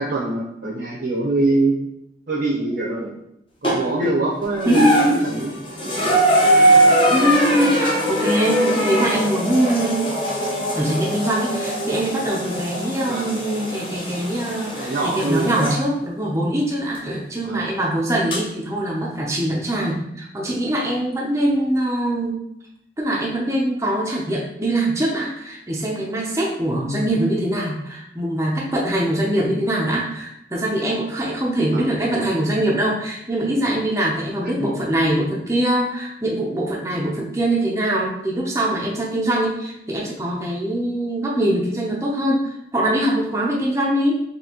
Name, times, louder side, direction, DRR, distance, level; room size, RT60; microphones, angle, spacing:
voice 1, 0.0-1.8 2.3-3.1 3.6-5.5 5.8-6.2 6.5-6.8 13.1-13.3 14.7-15.6 17.4-17.7 31.7-31.8 34.6-34.7, right 2 dB, 65° right, -4 dB, 0.8 m, -24 dB
sound 1, 3.6-4.1 4.6-15.8 17.0-17.1 18.3-18.4, right 1 dB, 30° left, 0.7 m, -21 dB
voice 2, 4.7-5.1 7.1-10.0 10.8-22.3 23.0-44.2, right 1 dB, 15° right, -3 dB, 0.5 m, -22 dB
4.3 x 2.8 x 2.8 m, 0.77 s
head